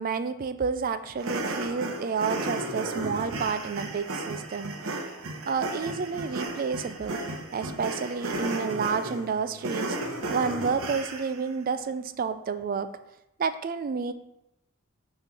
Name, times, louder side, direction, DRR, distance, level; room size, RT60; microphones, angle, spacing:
voice 1, 0.0-4.8 5.5-7.2 7.5-10.0 10.3-12.9 13.4-14.1, right 5 dB, 40° right, 11 dB, 0.3 m, -30 dB
sound 1, 1.2-11.4, right 2 dB, 70° right, 0.8 m, -34 dB
6.0 x 3.2 x 5.8 m, 0.86 s
head